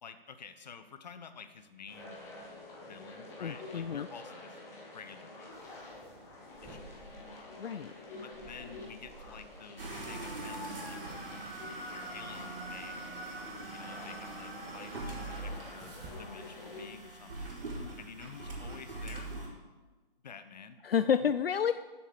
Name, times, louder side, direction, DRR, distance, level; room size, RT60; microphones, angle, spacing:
voice 1, 0.0-2.2 2.9-4.6 4.9-5.8 6.6-7.0 8.2-11.0 11.3-13.2 13.7-17.6 18.0-19.3 20.2-20.8, left 6 dB, 45° left, 10 dB, 0.9 m, -50 dB
sound 1, 1.9-16.8, left 2 dB, 10° left, 1.2 m, -49 dB
voice 2, 3.4-4.1 7.3-7.9 20.8-21.7, left 8 dB, 75° left, 12 dB, 0.5 m, -30 dB
sound 2, 5.5-16.2, right 2 dB, 10° right, 1.3 m, -57 dB
sound 3, 9.8-19.5, right 2 dB, 65° right, 3.8 m, -42 dB
12.5 x 7.4 x 5.0 m, 1.3 s
figure-of-eight pair, 150°, 29 cm